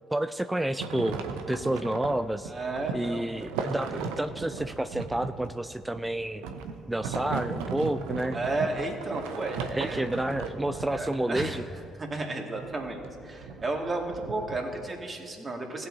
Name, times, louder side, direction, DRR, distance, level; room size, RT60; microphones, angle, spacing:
voice 1, 0.1-1.2 1.5-2.5 2.9-6.4 6.9-8.4 9.3-9.4 9.8-11.6, right 1 dB, 10° right, 11 dB, 0.4 m, -30 dB
sound 1, 0.8-11.8 12.6-15.0, right 5 dB, 70° right, 0.7 m, -37 dB
voice 2, 2.5-3.2 8.3-10.1 10.9-11.6 12.0-15.9, right 2 dB, 30° right, 1 dB, 2.1 m, -33 dB
18.5 x 8.3 x 2.8 m, 2.5 s
figure-of-eight pair, 45°, 0 cm